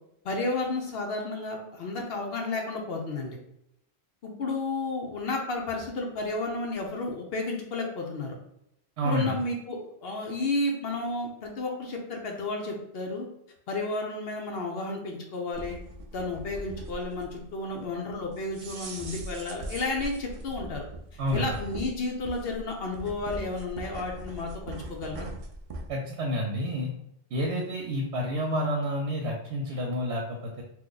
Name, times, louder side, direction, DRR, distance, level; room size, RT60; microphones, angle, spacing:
voice 1, 0.2-3.4 4.2-8.4 9.0-13.3 13.7-15.8 16.1-20.8 21.3-25.3, left 2 dB, 65° left, 1 dB, 0.8 m, -32 dB
voice 2, 9.0-9.3 21.2-21.5 25.9-26.9 27.3-30.6, equal, 90° right, -1 dB, 0.9 m, -29 dB
sound 1, 15.5-25.9, right 1 dB, 60° right, 0.3 m, -40 dB
3.0 x 2.2 x 3.7 m, 0.78 s
omnidirectional pair, 1.1 m